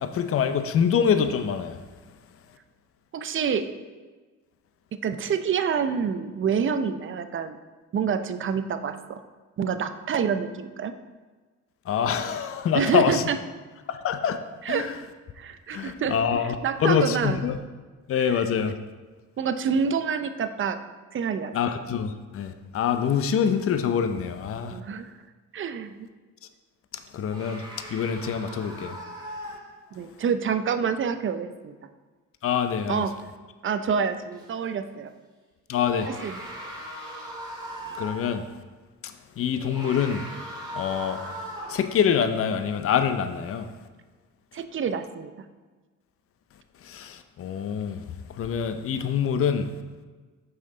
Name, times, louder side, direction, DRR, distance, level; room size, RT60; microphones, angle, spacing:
voice 1, 0.0-1.8 11.9-13.2 13.9-14.4 14.7-14.9 15.7-17.6 18.1-18.7 21.5-24.8 27.1-27.6 27.9-29.0 32.4-33.0 35.7-36.1 37.9-38.4 39.4-40.2 40.7-41.2 41.7-43.7 46.8-48.0 48.4-49.7, left 7 dB, 50° left, 9 dB, 0.6 m, -25 dB
voice 2, 3.1-3.7 5.0-7.6 7.9-9.2 9.6-10.9 12.7-13.4 14.6-14.9 15.4-16.2 16.6-17.4 18.2-18.4 19.4-20.8 21.1-21.5 24.7-25.1 25.5-26.1 29.9-31.7 32.9-33.1 33.6-35.1 36.0-36.4 44.5-45.3, right 6 dB, 40° right, 9 dB, 0.5 m, -27 dB
sound 1, 27.3-30.1 34.3-34.5 35.7-38.4 39.5-42.0, equal, 15° right, 2.0 m, -39 dB
6.2 x 5.7 x 3.8 m, 1.4 s
cardioid pair, 90°, 30 cm